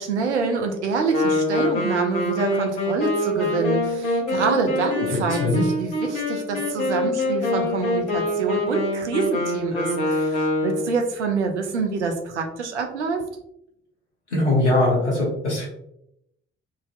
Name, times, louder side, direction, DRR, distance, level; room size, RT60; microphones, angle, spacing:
voice 1, 0.0-13.2, right 4 dB, 85° right, 4 dB, 0.5 m, -26 dB
Wind instrument woodwind instrument, 1.1-11.0, left 1 dB, 60° left, 1.0 m, -25 dB
voice 2, 5.1-5.6 14.3-15.7, left 2 dB, 85° left, -5 dB, 0.9 m, -21 dB
3.9 x 2.6 x 2.4 m, 0.78 s
figure-of-eight pair, 40°, 34 cm